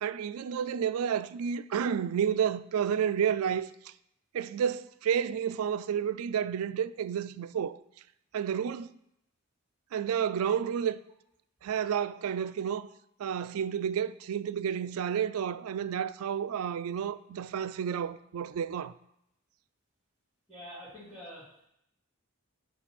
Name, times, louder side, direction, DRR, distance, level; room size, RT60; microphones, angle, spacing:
voice 1, 0.0-3.7 4.3-7.8 8.3-8.9 9.9-11.0 11.6-12.9 13.2-18.9, right 8 dB, 80° right, 0.3 m, -30 dB
voice 2, 20.5-21.6, equal, 5° right, 2.2 m, -46 dB
5.4 x 4.2 x 6.0 m
head